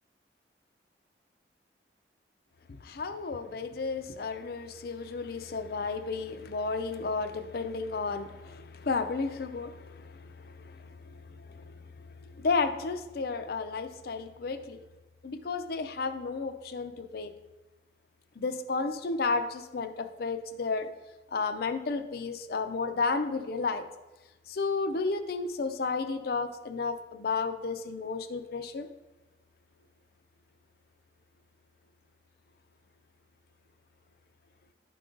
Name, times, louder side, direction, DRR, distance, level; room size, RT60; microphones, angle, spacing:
voice 1, 2.7-11.7 12.0-14.8 15.2-17.3 18.4-20.9 21.3-23.8 24.5-28.9, left 4 dB, 55° left, 9 dB, 0.5 m, -32 dB
10.5 x 3.8 x 3.8 m, 1.1 s
head